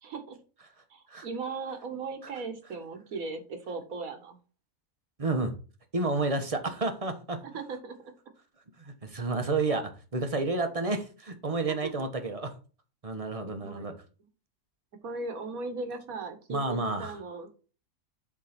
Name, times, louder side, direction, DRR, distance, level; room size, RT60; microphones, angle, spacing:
voice 1, 0.0-0.4 0.9-4.4 7.4-8.1 11.8-11.9 13.6-13.9 15.0-17.5, right 4 dB, 60° right, 7 dB, 1.6 m, -38 dB
voice 2, 5.2-5.5 5.9-7.4 8.8-9.8 10.1-12.5 13.0-13.9 16.5-17.2, right 3 dB, 25° right, 7 dB, 0.9 m, -30 dB
8.2 x 3.7 x 5.8 m, 0.36 s
omnidirectional pair, 1.7 m